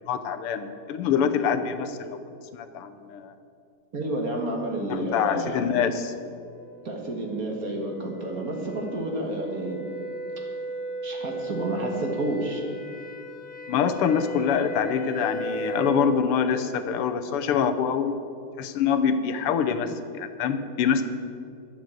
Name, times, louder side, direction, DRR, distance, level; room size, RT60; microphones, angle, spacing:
voice 1, 0.1-2.2 2.5-3.3 4.9-6.1 13.7-18.1 18.6-21.0, left 7 dB, 85° left, 9 dB, 1.7 m, -25 dB
voice 2, 3.9-5.6 6.8-9.9 11.0-12.6, right 1 dB, 45° right, 1 dB, 1.8 m, -30 dB
sound 1, 6.2-16.1, right 1 dB, 50° left, 1.2 m, -36 dB
12.0 x 8.0 x 7.6 m, 2.5 s
omnidirectional pair, 2.4 m